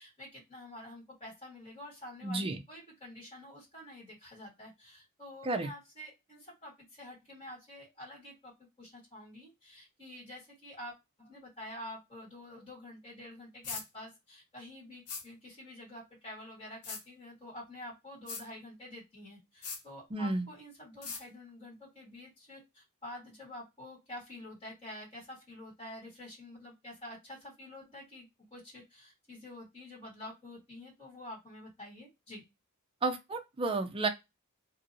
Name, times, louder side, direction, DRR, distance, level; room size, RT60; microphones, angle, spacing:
voice 1, 0.0-10.9 11.2-32.4, left 1 dB, 25° left, 1.6 m, -48 dB
voice 2, 2.2-2.6 5.4-5.7 20.1-20.5 33.0-34.1, right 2 dB, 25° right, 0.5 m, -31 dB
sound 1, 13.6-13.9 15.1-15.2 16.8-17.0 18.3-18.4 19.6-19.8 21.0-21.2, left 5 dB, 85° left, 0.9 m, -39 dB
2.7 x 2.6 x 2.5 m
head